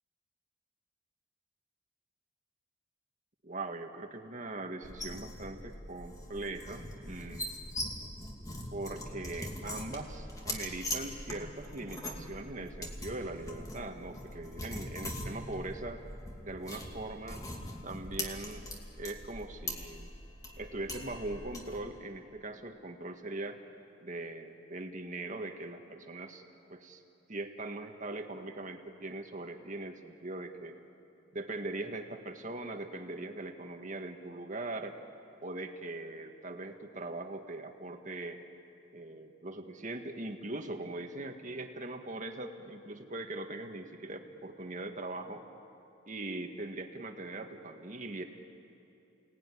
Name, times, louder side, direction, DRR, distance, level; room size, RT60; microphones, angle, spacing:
voice 1, 3.4-7.6 8.7-16.0 16.4-17.4 17.8-18.7 19.0-20.1 20.6-23.6 24.0-26.4 26.7-27.0 27.3-30.7 31.3-35.0 35.4-38.4 38.9-45.4 46.1-48.2, right 2 dB, 40° right, 4 dB, 1.8 m, -41 dB
sound 1, 4.8-21.8, left 1 dB, 20° left, 2.5 m, -42 dB
29.5 x 18.5 x 10.0 m, 2.7 s
head